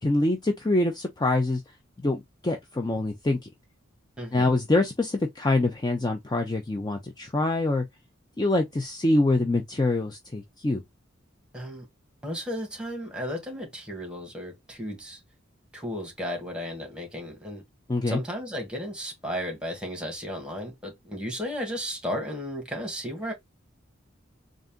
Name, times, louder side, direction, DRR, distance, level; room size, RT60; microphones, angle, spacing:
voice 1, 0.0-1.6 2.0-3.5 4.3-7.8 8.4-10.8 17.9-18.2, left 2 dB, 20° left, 0.5 m, -25 dB
voice 2, 4.2-4.5 11.5-11.8 12.2-15.2 15.7-17.6 18.1-23.3, equal, 5° right, 1.6 m, -34 dB
4.0 x 2.5 x 3.6 m
head